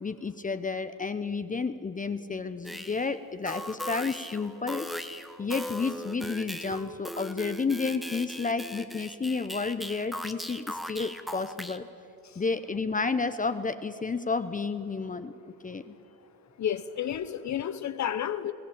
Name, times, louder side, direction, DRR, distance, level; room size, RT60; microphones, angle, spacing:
voice 1, 0.0-4.9 5.4-11.9 12.4-15.3 15.6-15.9, left 4 dB, 20° left, 0.8 m, -31 dB
sound 1, 2.6-3.1 3.5-11.8, equal, ahead, 1.1 m, -39 dB
voice 2, 16.6-18.5, left 9 dB, 50° left, 0.9 m, -31 dB
21.5 x 16.5 x 8.6 m
cardioid pair, 95°, 36 cm